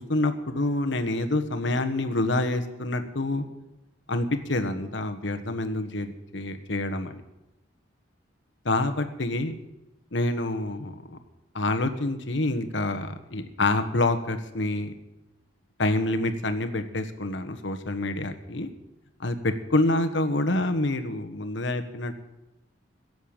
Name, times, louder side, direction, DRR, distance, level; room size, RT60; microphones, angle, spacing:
voice 1, 0.0-3.4 4.1-7.2 8.6-9.5 10.1-11.2 11.5-14.9 15.8-18.7 19.2-22.1, left 2 dB, 70° left, 7 dB, 1.3 m, -27 dB
16.5 x 8.0 x 9.0 m, 0.97 s
head